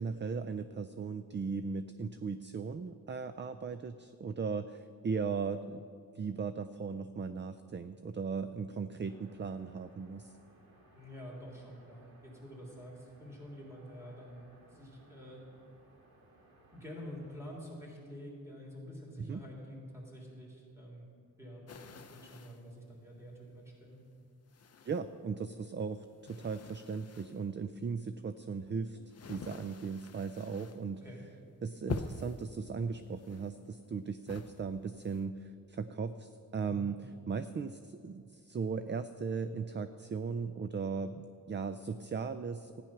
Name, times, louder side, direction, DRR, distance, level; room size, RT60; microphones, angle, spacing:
voice 1, 0.0-5.9 6.1-10.3 19.2-19.4 24.8-29.0 29.3-31.0 31.6-42.8, right 5 dB, 30° right, 11 dB, 0.4 m, -37 dB
sound 1, 9.0-17.4, right 2 dB, 85° right, 2.3 m, -62 dB
voice 2, 10.9-15.4 16.7-21.1 21.4-24.0 31.0-31.2 36.7-36.9, equal, 5° right, -4 dB, 3.4 m, -48 dB
sound 2, 21.7-22.7 23.4-23.5 24.5-25.3 25.7-27.5 28.2-30.9 31.2-31.5 31.9-32.5 33.1-33.9 34.3-35.2, left 6 dB, 45° left, 0.6 m, -46 dB
14.0 x 9.8 x 5.9 m, 2.3 s
wide cardioid pair, 115°, 36 cm